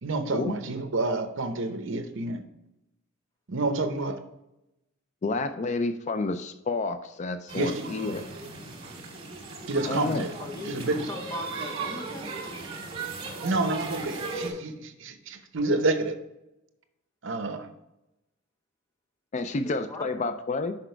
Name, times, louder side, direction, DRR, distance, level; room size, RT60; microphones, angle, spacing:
voice 1, 0.0-2.4 3.5-4.2 7.5-7.9 9.7-10.3 10.6-11.0 13.4-16.2 17.2-17.7, right 2 dB, 60° right, 8 dB, 0.8 m, -29 dB
voice 2, 5.2-8.2 9.9-10.2 19.3-20.8, left 3 dB, 35° left, 9 dB, 0.4 m, -29 dB
sound 1, 7.5-14.5, right 3 dB, 25° right, 1.7 m, -37 dB
voice 3, 10.4-12.3 19.5-20.3, left 2 dB, 15° left, 3 dB, 0.8 m, -40 dB
6.1 x 5.5 x 4.5 m, 0.90 s
head